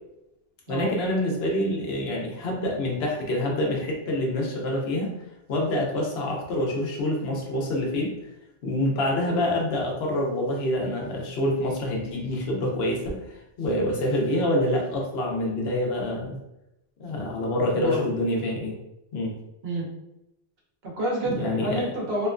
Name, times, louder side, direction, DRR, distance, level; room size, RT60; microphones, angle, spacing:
voice 1, 0.7-5.1 5.5-8.1 8.6-13.2 13.6-16.4 17.0-18.8 19.1-19.4 21.2-21.8, left 1 dB, 80° left, 0 dB, 0.9 m, -26 dB
voice 2, 17.7-18.1 19.6-19.9 20.8-22.3, right 2 dB, 75° right, -3 dB, 1.1 m, -28 dB
2.8 x 2.2 x 2.4 m, 0.89 s
omnidirectional pair, 1.1 m